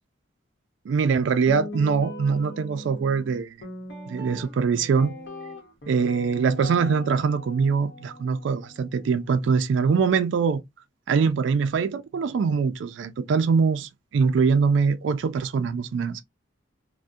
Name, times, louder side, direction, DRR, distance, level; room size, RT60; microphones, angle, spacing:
voice 1, 0.9-3.6 4.1-5.1 5.9-10.6 11.1-16.2, right 5 dB, 75° right, 0.3 m, -23 dB
Guitar, 1.5-9.6, left 1 dB, 70° left, 0.9 m, -40 dB
2.6 x 2.1 x 2.2 m
head